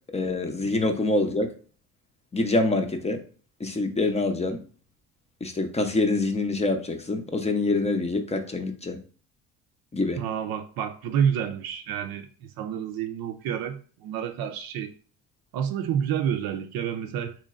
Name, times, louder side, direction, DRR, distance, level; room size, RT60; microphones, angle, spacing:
voice 1, 0.1-1.5 2.3-3.2 3.6-4.6 5.4-9.0 9.9-10.2, left 2 dB, 15° left, 0.6 m, -25 dB
voice 2, 10.2-14.9 15.5-17.4, right 8 dB, 65° right, 0.6 m, -29 dB
3.9 x 3.1 x 2.4 m
supercardioid pair, 70°, 39 cm